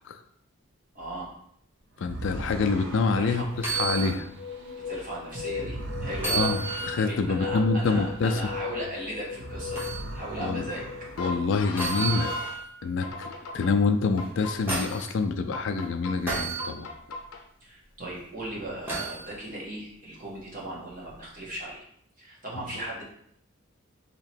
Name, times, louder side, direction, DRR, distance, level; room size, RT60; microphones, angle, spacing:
voice 1, 0.9-1.3 3.1-3.5 4.9-6.5 7.0-9.8 10.1-10.9 17.6-21.8 22.2-23.0, right 1 dB, 40° right, -4 dB, 1.2 m, -37 dB
voice 2, 2.0-4.3 6.3-8.5 10.4-10.6 11.2-12.3 12.8-16.9, left 4 dB, 60° left, 7 dB, 0.3 m, -26 dB
sound 1, 2.0-8.9 9.2-11.9, right 2 dB, 55° right, 0.5 m, -41 dB
sound 2, 3.5-12.5 13.0-13.7 14.2-15.0 15.5-16.1 16.6-17.4, left 5 dB, 90° left, 0.7 m, -37 dB
sound 3, 3.5-4.2 4.7-4.8 6.2-7.2 9.7-10.0 11.8-12.7 14.2-15.1 16.3-16.7 18.9-19.2 21.0-21.2, right 4 dB, 10° right, 0.9 m, -31 dB
2.9 x 2.9 x 4.2 m, 0.69 s
head